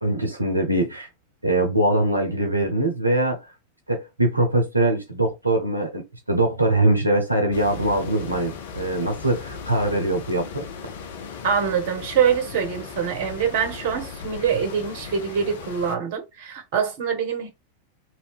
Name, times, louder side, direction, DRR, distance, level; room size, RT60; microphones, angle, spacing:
voice 1, 0.0-1.1 1.4-3.5 3.9-10.7, right 1 dB, 85° right, 0.7 m, -22 dB
sound 1, 7.5-16.0, left 6 dB, 60° left, 0.6 m, -37 dB
voice 2, 11.4-17.5, right 7 dB, 50° right, 1.0 m, -24 dB
2.7 x 2.7 x 3.4 m
figure-of-eight pair, 90°, 0 cm